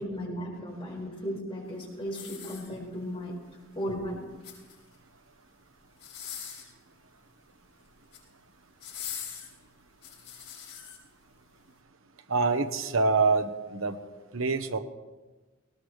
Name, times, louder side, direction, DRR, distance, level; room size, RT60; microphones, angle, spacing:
voice 1, 0.0-3.4 3.7-4.2, equal, 25° left, -3 dB, 5.3 m, -35 dB
sound 1, 2.1-3.1 4.2-5.0 5.9-6.8 7.8-8.3 8.8-11.0 11.6-11.7, left 8 dB, 60° left, 6.5 m, -42 dB
voice 2, 12.3-14.0 14.3-14.8, right 4 dB, 75° right, 7 dB, 1.0 m, -25 dB
20.0 x 19.0 x 3.3 m, 1.2 s
head